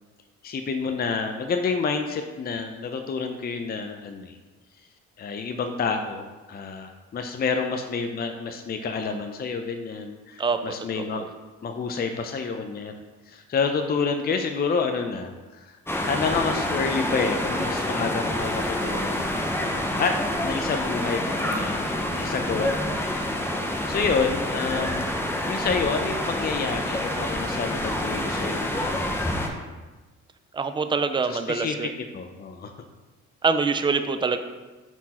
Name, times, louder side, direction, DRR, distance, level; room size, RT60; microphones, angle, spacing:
voice 1, 0.4-4.4 5.2-11.2 11.6-12.9 13.3-15.8 16.0-20.2 20.4-23.3 23.9-29.4 31.3-31.8 32.1-32.7, left 5 dB, 30° left, 5 dB, 0.5 m, -29 dB
voice 2, 11.0-11.3 30.5-31.9 33.4-34.4, right 4 dB, 15° right, 9 dB, 0.4 m, -25 dB
sound 1, 15.9-29.5, left 1 dB, 10° left, 0.8 m, -27 dB
5.9 x 4.5 x 4.2 m, 1.2 s
cardioid pair, 90°, 30 cm